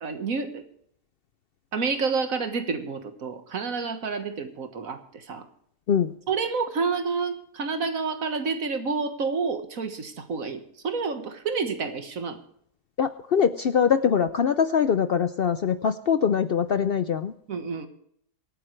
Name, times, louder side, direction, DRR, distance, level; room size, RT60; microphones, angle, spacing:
voice 1, 0.0-0.6 1.7-5.4 6.3-12.4 17.5-17.9, right 4 dB, 70° right, 7 dB, 1.8 m, -29 dB
voice 2, 13.0-17.3, left 7 dB, 60° left, 11 dB, 0.6 m, -23 dB
25.0 x 9.0 x 3.2 m, 0.68 s
omnidirectional pair, 1.5 m